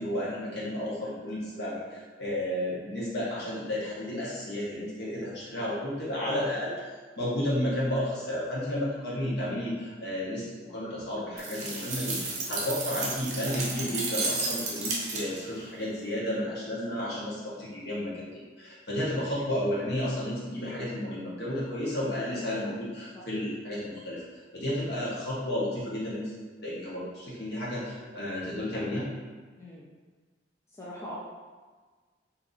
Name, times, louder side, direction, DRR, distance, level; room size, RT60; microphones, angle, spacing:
voice 1, 0.0-6.7 7.2-18.3 18.6-26.3 26.6-29.1, left 1 dB, 60° left, -7 dB, 1.0 m, -32 dB
sound 1, 11.4-15.5, right 3 dB, 40° right, 0.6 m, -33 dB
voice 2, 30.8-31.2, equal, 15° left, -7 dB, 0.4 m, -41 dB
2.8 x 2.5 x 3.7 m, 1.4 s
head